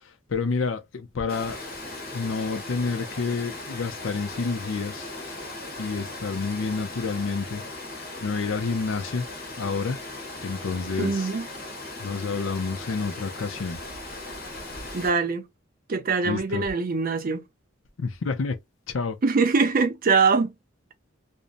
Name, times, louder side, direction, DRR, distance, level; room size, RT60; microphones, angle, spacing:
voice 1, 0.3-1.7 2.1-5.1 5.8-7.6 8.2-9.3 9.6-10.0 10.4-11.3 12.0-13.8 16.2-16.6 18.0-18.6 18.9-19.2, left 4 dB, 80° left, 0.5 m, -29 dB
Water, 1.3-15.1, left 2 dB, 50° left, 1.2 m, -38 dB
voice 2, 11.0-11.5 14.9-15.4 15.9-17.4 19.2-20.5, right 4 dB, 45° right, 0.5 m, -23 dB
2.6 x 2.1 x 2.5 m
head